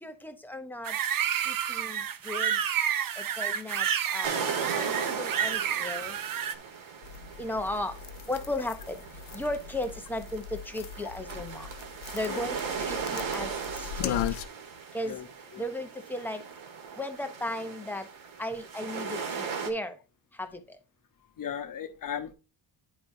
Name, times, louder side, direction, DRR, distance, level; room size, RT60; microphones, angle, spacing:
voice 1, 0.0-1.0 1.4-2.6 3.2-6.2 7.4-8.0 8.3-9.0 9.3-11.7 12.1-14.3 14.9-15.2 15.6-16.4 17.0-18.1 18.4-20.0 20.4-20.8, left 1 dB, 5° left, 0.6 m, -36 dB
sound 1, 0.8-6.5, right 9 dB, 45° right, 0.6 m, -30 dB
sound 2, 4.2-19.7, right 6 dB, 85° right, 1.7 m, -37 dB
sound 3, 7.0-14.5, left 10 dB, 90° left, 0.7 m, -38 dB
voice 2, 21.4-22.3, left 8 dB, 45° left, 0.9 m, -36 dB
10.5 x 5.0 x 2.6 m
wide cardioid pair, 160°, 46 cm